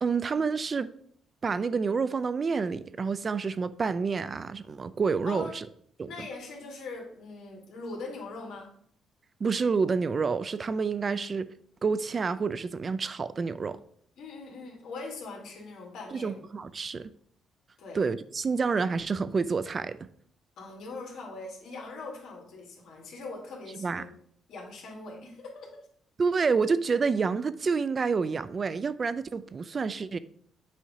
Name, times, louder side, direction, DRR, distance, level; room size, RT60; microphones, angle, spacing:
voice 1, 0.0-0.9 1.4-5.7 6.0-6.1 9.4-11.5 11.8-13.8 16.1-17.1 17.9-20.0 23.8-24.1 26.2-30.2, right 5 dB, 40° right, 0.3 m, -28 dB
voice 2, 6.1-8.7 14.2-16.4 16.9-17.1 17.8-18.0 20.6-24.1 24.5-25.7, left 3 dB, 75° left, 1.8 m, -41 dB
7.4 x 2.7 x 4.8 m
cardioid pair, 90°, 0 cm